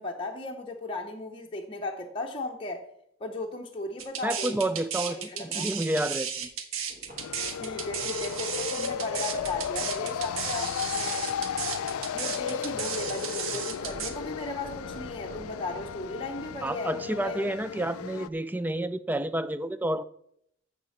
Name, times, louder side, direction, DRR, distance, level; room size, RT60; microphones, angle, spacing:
voice 1, 0.0-2.9 3.2-4.7 5.1-5.7 7.5-11.3 12.1-17.4, left 2 dB, 25° left, 0.8 m, -36 dB
sound 1, 4.0-14.1, right 7 dB, 75° right, 1.2 m, -34 dB
voice 2, 4.2-6.5 16.6-20.0, right 1 dB, 10° right, 0.3 m, -30 dB
sound 2, 6.9-16.7, equal, 35° right, 1.8 m, -50 dB
sound 3, 7.2-18.3, left 8 dB, 80° left, 0.4 m, -34 dB
7.5 x 6.7 x 7.1 m
head